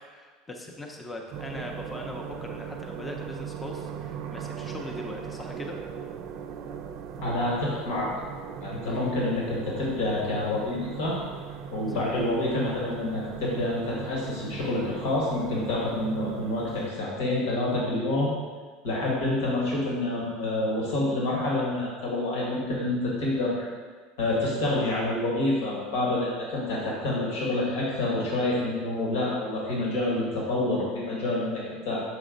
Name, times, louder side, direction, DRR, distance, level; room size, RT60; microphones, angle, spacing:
voice 1, 0.1-5.8 8.9-9.0 11.9-12.2, left 1 dB, 15° left, 2 dB, 0.6 m, -40 dB
sound 1, 1.3-16.9, right 7 dB, 55° right, 0.5 m, -39 dB
voice 2, 7.2-8.1 8.6-11.2 11.7-18.3 18.8-23.7 24.2-32.0, left 2 dB, 85° left, -4 dB, 1.8 m, -28 dB
6.9 x 4.0 x 3.9 m, 1.5 s
supercardioid pair, 145°, 0 cm